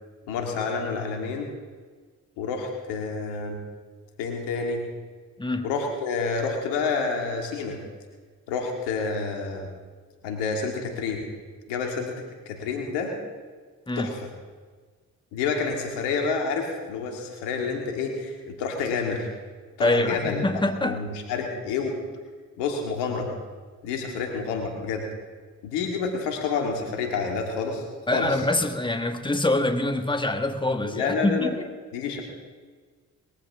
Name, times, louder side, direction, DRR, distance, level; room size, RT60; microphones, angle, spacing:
voice 1, 0.3-1.5 2.4-3.6 4.2-4.8 5.6-7.8 8.5-9.7 10.2-11.3 11.7-12.1 12.5-13.1 14.0-14.2 15.3-19.3 19.8-20.4 20.8-21.9 22.6-23.3 23.8-25.0 25.6-27.8 28.1-28.3 30.8-31.5 31.9-32.2, left 5 dB, 85° left, 2 dB, 2.4 m, -28 dB
voice 2, 19.8-21.0 28.1-31.7, left 2 dB, 10° left, 6 dB, 1.7 m, -25 dB
21.0 x 14.5 x 3.6 m, 1.5 s
hypercardioid pair, 40°, 41 cm